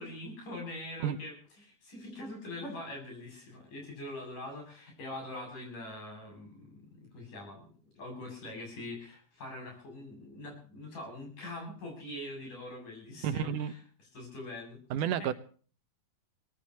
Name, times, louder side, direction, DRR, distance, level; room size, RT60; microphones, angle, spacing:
voice 1, 0.0-7.7 8.0-15.4, left 1 dB, 75° left, 1 dB, 9.4 m, -43 dB
voice 2, 13.2-13.7 14.9-15.3, right 9 dB, 80° right, 13 dB, 2.6 m, -30 dB
23.5 x 19.0 x 3.0 m, 0.43 s
omnidirectional pair, 3.6 m